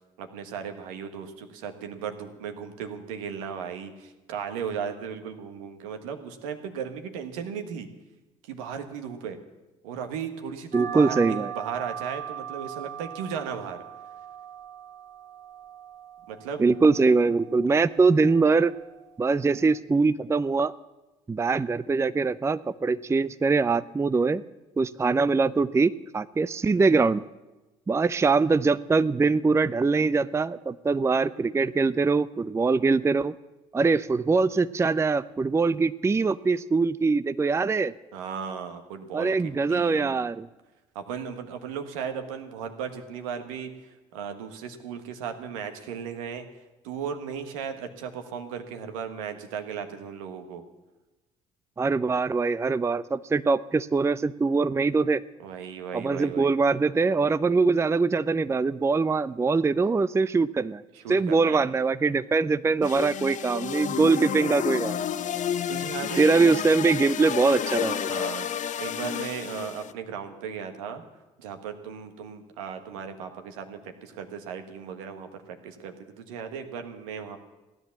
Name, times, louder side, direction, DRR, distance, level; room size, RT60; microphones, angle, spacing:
voice 1, 0.2-7.9 8.4-9.4 9.8-13.8 16.3-16.6 38.1-40.3 40.9-46.5 46.8-50.6 55.4-56.5 60.9-61.6 65.7-66.6 68.1-71.0 71.4-77.4, right 7 dB, 80° right, 6 dB, 1.6 m, -36 dB
voice 2, 10.7-11.5 16.6-18.7 19.2-20.7 21.3-24.4 24.8-27.2 27.9-33.3 33.7-37.9 39.1-40.5 51.8-55.2 55.9-60.8 61.1-65.1 66.2-68.1, right 4 dB, 15° right, 15 dB, 0.5 m, -23 dB
sound 1, 10.7-19.8, right 9 dB, 50° right, 1.4 m, -40 dB
sound 2, 62.8-69.9, left 9 dB, 45° left, 0.8 m, -31 dB
16.0 x 11.0 x 7.3 m, 1.1 s
hypercardioid pair, 60°, 17 cm